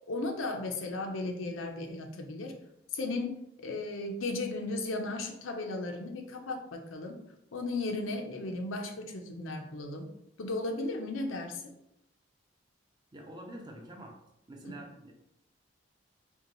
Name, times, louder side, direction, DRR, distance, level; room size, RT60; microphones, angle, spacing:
voice 1, 0.0-2.6 2.9-7.2 7.5-10.1 10.4-11.7 14.6-14.7, left 2 dB, 90° left, 4 dB, 0.6 m, -35 dB
voice 2, 13.1-14.2 14.5-15.1, right 1 dB, 20° right, 1 dB, 0.6 m, -46 dB
5.3 x 2.3 x 3.0 m, 0.82 s
head